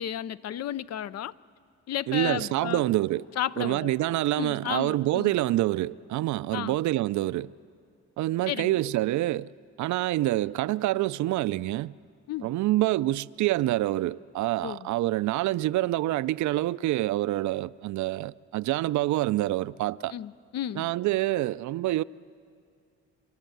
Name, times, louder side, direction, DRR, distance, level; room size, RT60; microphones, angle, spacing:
voice 1, 0.0-1.3 1.9-2.8 3.4-3.9 4.4-5.3 6.5-6.8 8.5-8.8 12.3-12.5 14.6-14.9 20.1-20.9, left 11 dB, 60° left, 0.5 m, -33 dB
voice 2, 2.1-3.2 3.6-7.5 8.2-9.5 9.8-11.9 12.4-20.1 20.8-22.0, right 16 dB, 70° right, 0.5 m, -26 dB
27.0 x 12.5 x 9.2 m
cardioid pair, 90°, 30 cm